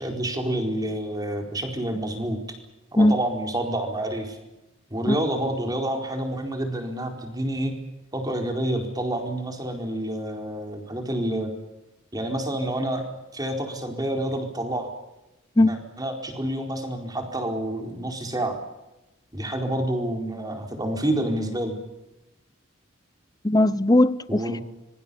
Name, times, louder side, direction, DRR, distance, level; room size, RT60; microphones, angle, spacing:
voice 1, 0.0-2.6 2.9-4.4 4.9-7.8 8.1-11.5 12.1-13.1 13.3-14.9 15.6-18.6 19.3-21.8 24.3-24.6, right 1 dB, 20° right, 4.4 m, -28 dB
voice 2, 23.4-24.6, left 1 dB, 20° left, 0.8 m, -19 dB
26.0 x 23.5 x 7.1 m
head